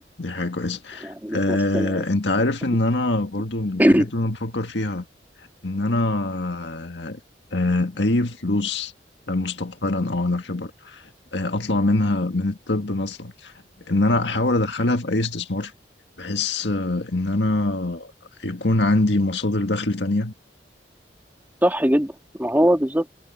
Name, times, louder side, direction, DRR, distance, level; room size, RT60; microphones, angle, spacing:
voice 1, 0.2-5.1 5.4-7.2 7.5-8.9 9.3-13.5 13.9-15.7 16.2-18.1 18.4-20.3, left 2 dB, 85° left, 1.7 m, -24 dB
voice 2, 1.0-2.0 3.8-4.1 21.6-22.1 22.4-23.1, equal, 10° right, 2.3 m, -20 dB
head